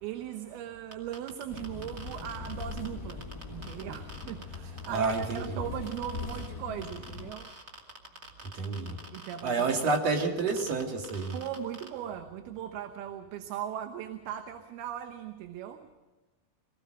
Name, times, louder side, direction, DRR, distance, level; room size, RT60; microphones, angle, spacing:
voice 1, 0.0-7.5 9.1-9.8 11.3-15.9, right 10 dB, 80° right, 7 dB, 3.0 m, -39 dB
sound 1, 0.9-5.5 5.9-6.5 6.8-11.9, right 2 dB, 25° right, 2.0 m, -46 dB
sound 2, 1.5-7.3, left 4 dB, 70° left, 0.8 m, -41 dB
voice 2, 4.9-5.4 8.5-9.0 9.4-11.3, right 4 dB, 45° right, 3 dB, 2.8 m, -29 dB
23.5 x 18.0 x 6.4 m, 1.2 s
omnidirectional pair, 4.5 m